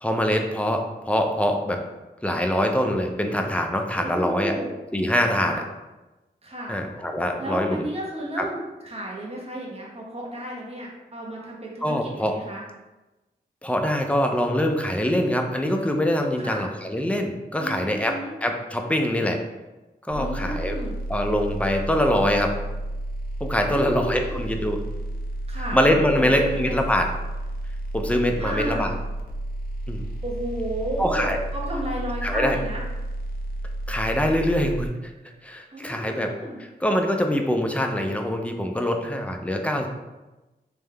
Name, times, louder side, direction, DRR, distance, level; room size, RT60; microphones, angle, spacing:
voice 1, 0.0-1.8 2.2-4.5 4.9-5.5 6.7-7.8 8.4-8.5 11.8-12.3 13.6-19.4 20.1-20.8 21.1-22.5 23.4-24.8 25.6-27.1 27.9-28.9 29.9-30.0 31.0-31.4 32.2-32.6 33.9-34.9 35.4-36.3 36.6-39.9, left 1 dB, 5° left, 3 dB, 0.5 m, -24 dB
voice 2, 4.0-4.7 5.4-5.6 6.4-6.8 7.4-12.6 16.4-16.6 17.6-18.3 20.1-20.9 23.6-24.4 25.5-25.8 26.2-26.8 28.4-28.9 30.2-32.8 35.7-36.6, right 1 dB, 35° right, -3 dB, 1.1 m, -33 dB
sound 1, 20.1-34.9, right 1 dB, 55° left, 0.7 m, -32 dB
3.5 x 3.2 x 3.4 m, 1.1 s
wide cardioid pair, 75°, 18 cm